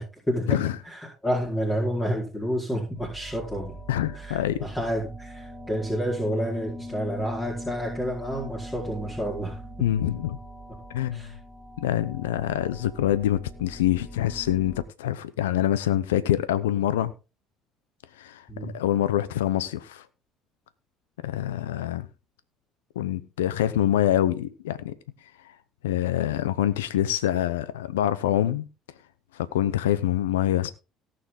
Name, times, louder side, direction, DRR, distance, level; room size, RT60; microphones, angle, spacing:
voice 1, 0.0-0.6 0.9-3.7 4.1-9.6 11.1-11.3 18.5-18.7, equal, 15° left, 4.5 m, -29 dB
sound 1, 2.9-14.8, equal, 40° left, 7.6 m, -41 dB
voice 2, 3.9-4.6 9.8-10.4 10.9-11.2 11.8-17.1 18.2-20.1 21.2-22.1 23.0-24.9 25.4-25.5 25.8-28.6 29.3-30.7, left 12 dB, 90° left, 0.7 m, -25 dB
18.0 x 6.9 x 3.7 m
hypercardioid pair, 70°, 0 cm